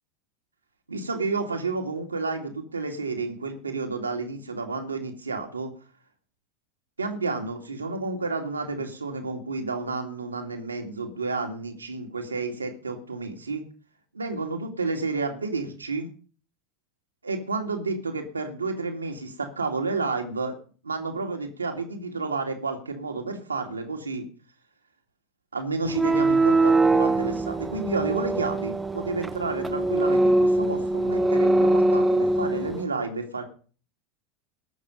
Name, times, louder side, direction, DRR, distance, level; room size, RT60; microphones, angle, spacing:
voice 1, 0.9-5.7 7.0-13.6 14.1-16.1 17.2-20.6 20.8-24.2 25.5-33.4, right 3 dB, 85° right, 3 dB, 2.3 m, -30 dB
sound 1, 25.9-32.8, right 2 dB, 10° right, 1.0 m, -22 dB
20.0 x 6.8 x 5.3 m, 0.41 s
figure-of-eight pair, 80°, 0 cm